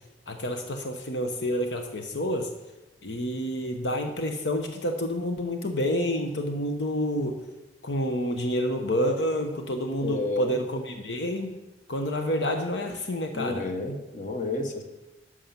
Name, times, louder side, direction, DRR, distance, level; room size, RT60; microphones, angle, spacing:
voice 1, 0.3-2.5 3.0-7.5 7.8-11.6 11.9-13.7, equal, 80° left, 4 dB, 1.0 m, -29 dB
voice 2, 10.0-10.5 13.3-14.8, left 2 dB, 45° left, 4 dB, 1.3 m, -30 dB
11.0 x 6.4 x 5.9 m, 1.0 s
head